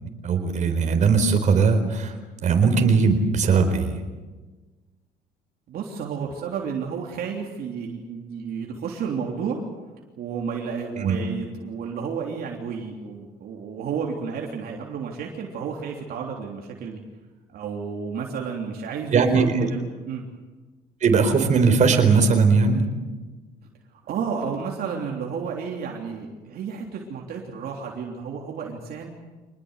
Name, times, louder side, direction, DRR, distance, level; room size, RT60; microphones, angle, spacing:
voice 1, 0.2-2.1 2.4-4.0 11.0-11.2 19.1-19.7 21.0-22.8, right 5 dB, 45° right, 6 dB, 4.3 m, -19 dB
voice 2, 5.7-9.6 10.2-17.0 17.5-20.2 23.9-29.1, right 6 dB, 65° right, 0 dB, 3.3 m, -31 dB
25.5 x 20.5 x 8.2 m, 1.3 s
cardioid pair, 110°, 17 cm